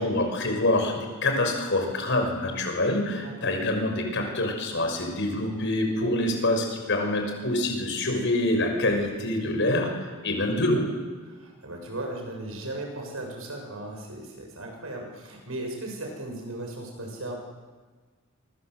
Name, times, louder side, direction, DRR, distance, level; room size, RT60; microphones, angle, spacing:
voice 1, 0.0-9.9 10.2-10.9, left 1 dB, 60° left, 4 dB, 6.2 m, -26 dB
voice 2, 3.2-3.5 11.2-17.4, right 1 dB, 80° right, 2 dB, 7.3 m, -37 dB
28.0 x 25.5 x 8.1 m, 1.4 s
head